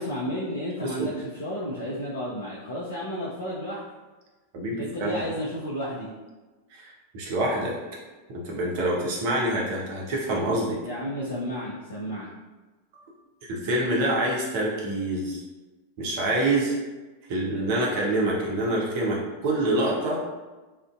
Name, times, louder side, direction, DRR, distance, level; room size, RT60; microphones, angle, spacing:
voice 1, 0.0-3.8 4.8-6.1 10.8-12.3, equal, 70° left, -7 dB, 0.4 m, -32 dB
voice 2, 4.5-5.1 6.7-7.8 8.3-10.8 13.5-15.4 16.0-16.7 17.3-20.3, right 1 dB, 50° right, -3 dB, 0.6 m, -26 dB
2.5 x 2.1 x 2.3 m, 1.2 s
figure-of-eight pair, 90°, 0 cm